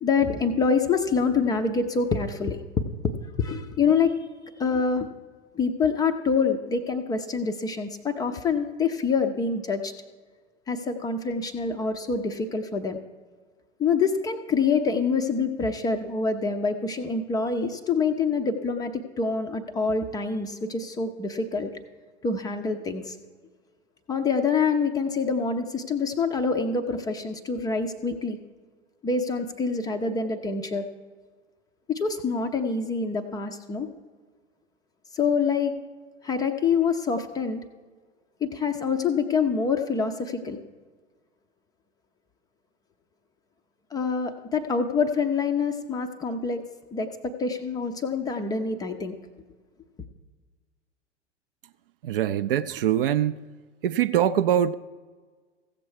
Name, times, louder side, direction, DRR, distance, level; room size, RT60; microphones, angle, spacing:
voice 1, 0.0-2.6 3.4-4.2 4.6-5.1 5.5-9.9 10.7-13.0 13.8-21.7 22.2-23.2 24.1-28.4 29.0-30.9 31.9-33.9 35.1-35.7 36.2-37.6 38.4-40.6 43.9-46.6 46.9-49.1, left 5 dB, 10° left, 0.4 m, -26 dB
voice 2, 52.0-53.4 53.8-54.7, right 10 dB, 50° right, 0.4 m, -23 dB
15.5 x 6.8 x 4.8 m
figure-of-eight pair, 90°, 36 cm